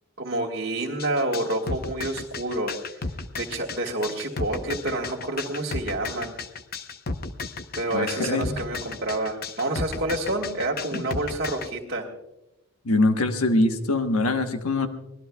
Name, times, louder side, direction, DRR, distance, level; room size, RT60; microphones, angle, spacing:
voice 1, 0.2-3.1 3.4-6.4 7.7-12.1, right 1 dB, 50° right, -4 dB, 1.7 m, -28 dB
sound 1, 1.0-11.7, left 3 dB, 45° left, 0.8 m, -33 dB
voice 2, 7.9-8.6 10.9-11.0 12.8-14.9, left 2 dB, 85° left, 7 dB, 1.2 m, -23 dB
24.5 x 18.5 x 2.3 m, 0.94 s
head